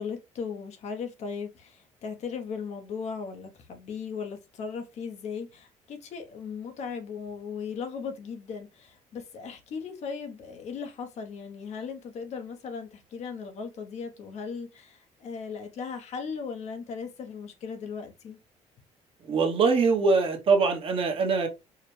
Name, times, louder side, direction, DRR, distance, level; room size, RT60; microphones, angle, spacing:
voice 1, 0.0-18.4, left 6 dB, 60° left, 0.9 m, -37 dB
voice 2, 19.2-21.5, right 4 dB, 45° right, 1.0 m, -23 dB
4.7 x 2.2 x 3.1 m
cardioid pair, 115°, 13 cm